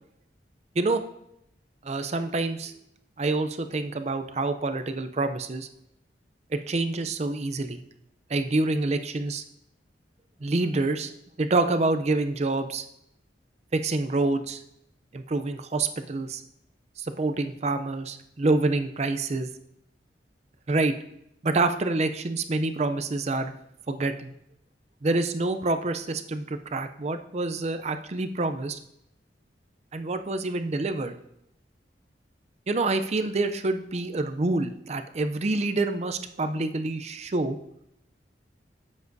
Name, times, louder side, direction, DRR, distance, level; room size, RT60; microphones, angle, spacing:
voice 1, 1.8-2.7 3.2-5.7 6.5-7.8 8.3-9.4 10.4-11.1 11.4-12.8 13.7-14.6 15.1-16.4 17.0-19.5 20.7-20.9 21.4-23.5 23.9-24.3 25.0-28.8 29.9-31.1 32.7-37.6, right 2 dB, 40° right, 8 dB, 0.5 m, -27 dB
12.5 x 7.3 x 2.7 m, 0.79 s
head